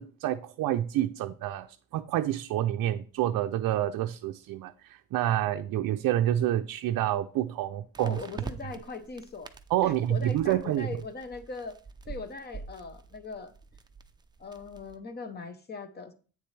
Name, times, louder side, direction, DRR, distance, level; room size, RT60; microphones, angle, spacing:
voice 1, 0.0-8.2 9.7-10.9, right 12 dB, 65° right, 0.5 m, -28 dB
sound 1, 1.2-1.3 7.9-15.0, right 4 dB, 10° right, 0.5 m, -46 dB
voice 2, 8.0-9.5 9.8-11.8 12.1-13.5 14.4-16.1, left 4 dB, 25° left, 0.9 m, -40 dB
8.7 x 6.8 x 3.3 m
cardioid pair, 120°, 36 cm